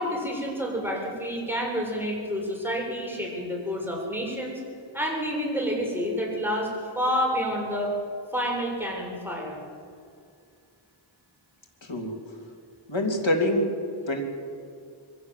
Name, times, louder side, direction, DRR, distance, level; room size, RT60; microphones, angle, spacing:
voice 1, 0.0-4.5 4.9-6.7 7.0-7.9 8.3-9.6, equal, 5° right, -2 dB, 7.0 m, -29 dB
voice 2, 11.8-12.2 12.9-13.7 14.1-14.2, left 1 dB, 70° left, 2 dB, 3.3 m, -25 dB
23.0 x 16.5 x 7.6 m, 2.3 s
wide cardioid pair, 40°, 48 cm